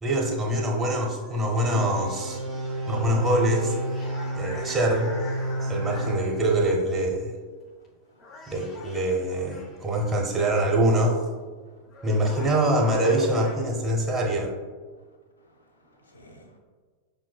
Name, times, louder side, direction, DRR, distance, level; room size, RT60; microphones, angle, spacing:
voice 1, 0.0-2.4 2.9-5.1 5.6-7.3 8.5-11.3 12.0-14.5, right 1 dB, 10° right, 0 dB, 0.7 m, -24 dB
sound 1, 1.2-6.7 7.6-7.9 8.2-10.0 11.4-11.5 11.8-13.6, left 2 dB, 30° left, 0.6 m, -45 dB
sound 2, 1.7-6.7, right 1 dB, 45° right, 0.4 m, -31 dB
voice 2, 15.5-16.6, equal, 75° left, 2 dB, 0.6 m, -54 dB
5.6 x 2.6 x 2.2 m, 1.5 s
figure-of-eight pair, 90°, 0 cm